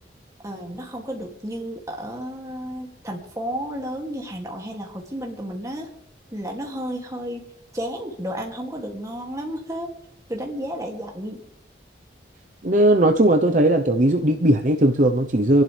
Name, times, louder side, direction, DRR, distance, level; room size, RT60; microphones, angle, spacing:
voice 1, 0.4-5.9 6.3-7.5 7.7-9.9 10.3-11.4, equal, 20° right, 0 dB, 2.6 m, -32 dB
voice 2, 12.6-15.6, right 1 dB, 45° right, 4 dB, 0.9 m, -18 dB
26.5 x 11.5 x 3.4 m, 0.69 s
head